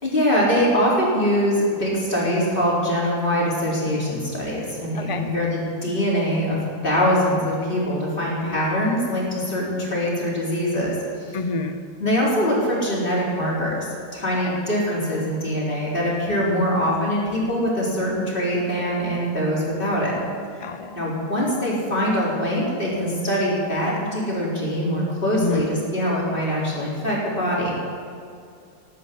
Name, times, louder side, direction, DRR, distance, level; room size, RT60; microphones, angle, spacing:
voice 1, 0.0-11.4 12.0-20.2 20.9-27.7, equal, 30° left, -6 dB, 4.6 m, -23 dB
voice 2, 5.0-5.3 8.4-8.6 11.3-11.8 14.4-14.6 16.4-16.6 20.6-21.0 25.3-25.7, left 4 dB, 45° left, 7 dB, 0.4 m, -29 dB
17.0 x 9.4 x 8.6 m, 2.3 s
omnidirectional pair, 1.9 m